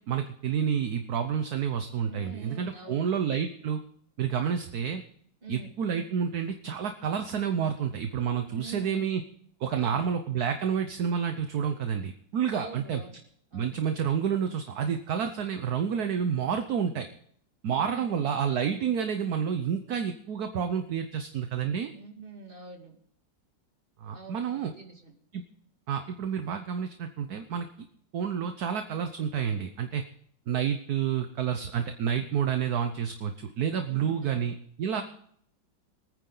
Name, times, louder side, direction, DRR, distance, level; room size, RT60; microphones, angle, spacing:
voice 1, 0.1-3.8 4.2-5.0 5.5-9.2 9.6-13.0 13.5-17.1 17.6-21.9 24.0-24.7 25.3-25.4 25.9-27.7 28.1-30.0 30.5-34.5 34.8-35.0, right 7 dB, 60° right, 7 dB, 1.3 m, -29 dB
voice 2, 2.1-3.1 5.4-5.7 8.5-9.1 9.7-10.1 12.5-13.2 13.5-13.8 17.7-18.2 21.9-23.0 24.1-25.1 33.9-34.4 34.9-35.0, right 4 dB, 25° right, 1 dB, 2.5 m, -45 dB
23.5 x 9.7 x 3.9 m, 0.65 s
omnidirectional pair, 2.0 m